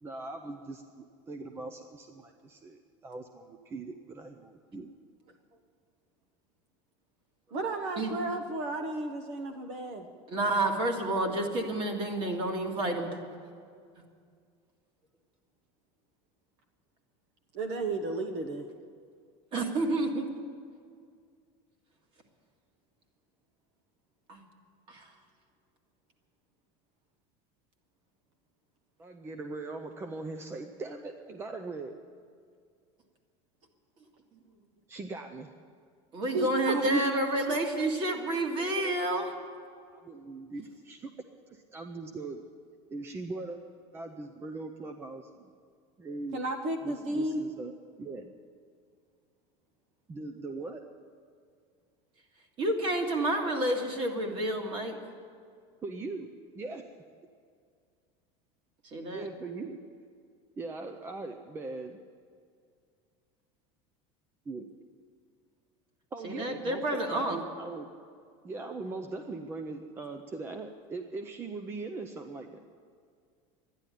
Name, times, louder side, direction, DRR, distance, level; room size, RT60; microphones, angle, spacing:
voice 1, 0.0-4.9 29.0-31.9 34.9-35.5 39.9-41.1 41.5-42.4 42.9-43.6 43.9-45.5 46.0-46.5 46.8-47.7 48.0-48.3 50.1-50.8 55.8-56.3 56.5-56.8 59.1-59.8 60.6-62.0 64.5-64.7 66.1-67.9 68.4-72.6, right 3 dB, 15° right, 6 dB, 0.5 m, -40 dB
voice 2, 7.5-10.1 17.5-18.7 36.3-37.1 46.3-47.4, right 2 dB, 50° right, 5 dB, 1.0 m, -33 dB
voice 3, 10.3-13.2 19.5-20.3 24.3-24.4 24.9-25.1 36.1-39.4 52.6-55.0 58.8-59.3 66.2-67.4, right 1 dB, 35° right, 3 dB, 1.9 m, -29 dB
12.5 x 10.5 x 10.0 m, 2.2 s
cardioid pair, 160°, 15 cm